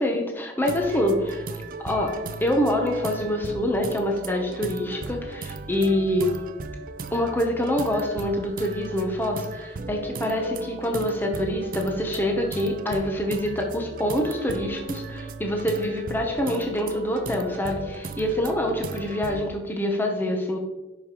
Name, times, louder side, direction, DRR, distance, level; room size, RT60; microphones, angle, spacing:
voice 1, 0.0-1.4 1.8-2.1 2.4-6.3 7.1-20.6, left 1 dB, 10° left, 1 dB, 0.8 m, -26 dB
sound 1, 0.6-19.5, right 3 dB, 50° right, 0.5 m, -37 dB
10.5 x 5.0 x 3.0 m, 1.1 s
head